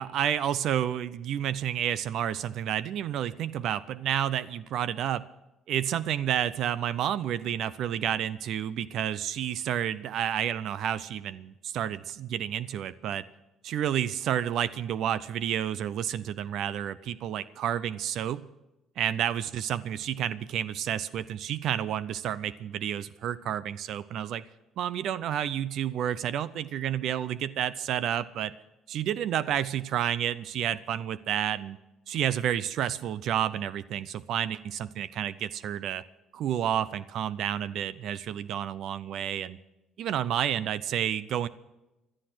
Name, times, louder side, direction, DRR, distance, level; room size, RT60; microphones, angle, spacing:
voice 1, 0.0-5.3 5.7-13.3 13.6-18.4 19.0-24.4 24.8-28.5 28.9-31.8 32.1-36.0 36.3-39.6 40.0-41.5, right 10 dB, 65° right, 17 dB, 0.5 m, -30 dB
16.5 x 12.0 x 6.0 m, 0.98 s
cardioid pair, 120°, 0 cm